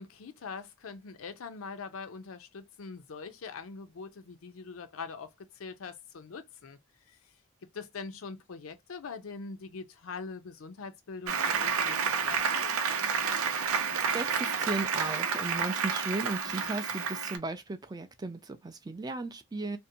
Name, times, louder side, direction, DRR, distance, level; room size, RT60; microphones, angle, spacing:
voice 1, 0.0-6.8 7.1-7.2 7.7-12.7, left 4 dB, 70° left, 0.5 m, -43 dB
Applause, 11.3-17.4, right 6 dB, 85° right, 0.5 m, -30 dB
voice 2, 14.1-19.8, right 3 dB, 20° right, 0.3 m, -36 dB
2.6 x 2.1 x 2.6 m
head